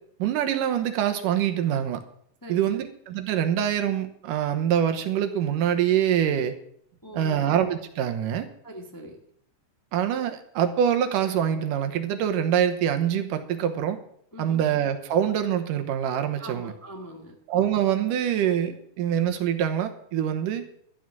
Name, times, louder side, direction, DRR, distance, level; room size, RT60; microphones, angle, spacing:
voice 1, 0.2-2.0 2.5-6.5 7.1-8.5 9.9-14.0 14.4-16.7 17.5-20.7, right 9 dB, 80° right, 6 dB, 2.7 m, -25 dB
voice 2, 2.4-2.8 7.0-7.5 8.6-9.2 14.3-14.6 16.4-17.3, right 1 dB, 10° left, 1 dB, 0.8 m, -41 dB
13.0 x 10.0 x 6.1 m, 0.67 s
omnidirectional pair, 3.8 m